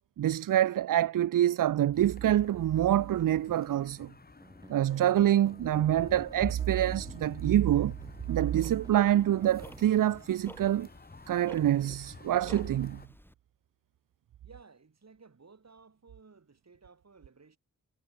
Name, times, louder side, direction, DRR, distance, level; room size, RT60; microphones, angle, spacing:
voice 1, 0.2-4.1 4.7-7.9 8.3-10.9 11.3-13.0, right 12 dB, 80° right, 0.5 m, -26 dB
sound 1, 1.9-13.1, left 3 dB, 30° left, 1.2 m, -49 dB
sound 2, 4.4-10.8, right 1 dB, 10° right, 3.4 m, -54 dB
Tick-tock, 7.8-13.3, equal, 5° left, 7.3 m, -53 dB
voice 2, 14.4-17.6, right 4 dB, 55° right, 5.3 m, -57 dB
cardioid pair, 60°, 32 cm